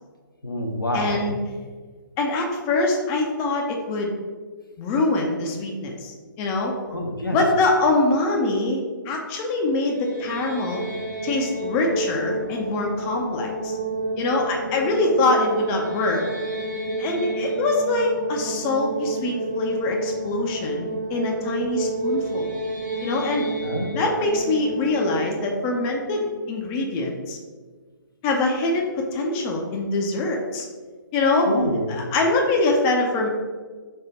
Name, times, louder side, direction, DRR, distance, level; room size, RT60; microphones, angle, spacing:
voice 1, 0.4-1.4 6.9-7.4 23.6-24.0 31.5-32.0, left 1 dB, 85° left, 1 dB, 0.8 m, -27 dB
voice 2, 0.9-1.4 2.2-4.1 4.8-6.7 7.3-10.8 11.2-13.8 14.2-16.2 17.0-22.5 23.0-23.4 23.9-27.4 28.2-30.7 31.1-31.5 31.9-33.3, left 2 dB, 20° left, 1 dB, 0.5 m, -24 dB
sound 1, 9.8-27.0, right 1 dB, 60° right, 1.1 m, -30 dB
3.5 x 3.5 x 4.0 m, 1.5 s
figure-of-eight pair, 135°, 11 cm